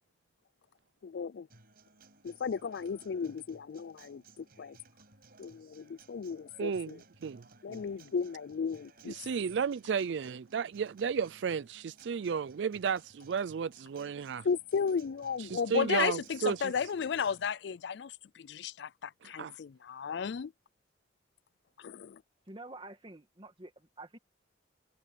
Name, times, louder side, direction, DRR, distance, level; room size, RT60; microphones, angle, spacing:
voice 1, 1.0-1.5 2.2-4.8 5.4-7.0 7.6-9.2 14.4-20.5 21.8-22.2, left 6 dB, 65° left, 0.4 m, -34 dB
Acoustic guitar, 1.5-17.5, right 4 dB, 55° right, 7.2 m, -60 dB
voice 2, 6.6-7.8 9.1-14.5 15.5-16.7 19.2-19.5, right 6 dB, 75° right, 0.4 m, -33 dB
voice 3, 22.5-24.2, right 2 dB, 30° right, 1.8 m, -48 dB
head